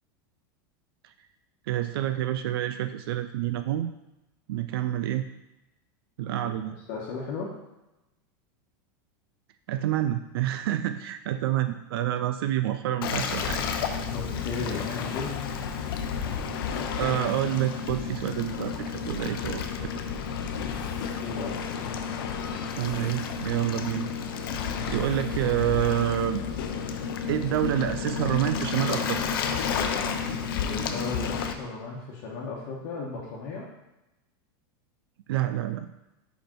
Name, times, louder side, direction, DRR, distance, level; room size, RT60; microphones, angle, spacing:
voice 1, 1.7-3.9 4.5-5.2 6.2-6.8 9.7-13.6 17.0-19.9 22.8-24.1 24.9-26.4 27.3-29.2 35.3-35.9, right 12 dB, 85° right, 9 dB, 0.4 m, -28 dB
voice 2, 6.5-7.5 14.1-15.3 21.2-21.6 30.6-33.7, left 4 dB, 50° left, -3 dB, 1.2 m, -35 dB
Waves surf, 13.0-31.5, left 6 dB, 75° left, 0.7 m, -31 dB
5.0 x 5.0 x 4.5 m, 0.97 s
supercardioid pair, 155°, 12 cm